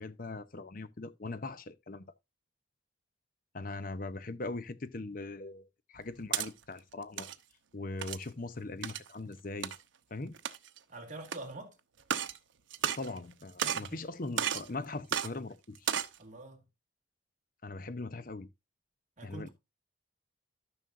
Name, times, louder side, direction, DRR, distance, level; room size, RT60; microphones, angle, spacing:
voice 1, 0.0-2.0 3.5-7.3 7.7-9.7 10.1-10.3 13.0-15.9 17.6-18.5 19.2-19.5, left 2 dB, 45° left, 0.7 m, -40 dB
sound 1, 6.0-6.5 7.0-7.4 8.0-8.3 8.8-9.1 9.6-9.8 10.3-10.8 11.3-11.4 12.0-12.4 12.7-13.3 13.6-13.9 14.4-14.7 15.1-15.3 15.8-16.2, right 8 dB, 80° right, 0.8 m, -33 dB
voice 2, 10.9-11.8 13.6-14.0 16.2-16.6 19.2-19.5, right 2 dB, 40° right, 2.1 m, -45 dB
13.0 x 6.2 x 2.6 m
head